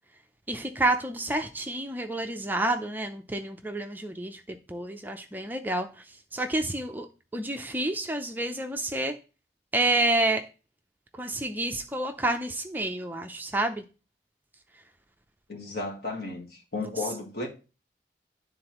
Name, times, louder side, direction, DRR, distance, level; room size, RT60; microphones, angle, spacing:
voice 1, 0.5-6.0 6.3-7.1 7.3-9.2 9.7-10.4 11.2-13.8 16.8-16.9, right 2 dB, 10° right, 0.5 m, -29 dB
voice 2, 15.5-17.5, left 3 dB, 60° left, 1.8 m, -34 dB
11.5 x 3.8 x 3.0 m
head